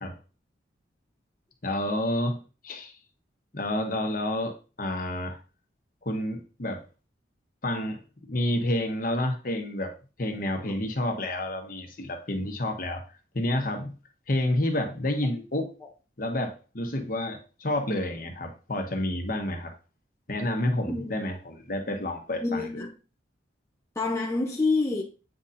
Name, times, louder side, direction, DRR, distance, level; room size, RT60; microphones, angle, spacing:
voice 1, 1.6-2.9 3.5-5.4 6.0-6.8 7.6-9.9 10.2-13.0 13.3-13.9 14.3-15.7 16.2-19.7 20.3-22.8, left 1 dB, 45° left, 1.1 m, -29 dB
voice 2, 22.4-22.9 24.0-25.0, left 3 dB, 15° left, 0.6 m, -27 dB
8.8 x 4.2 x 2.6 m
head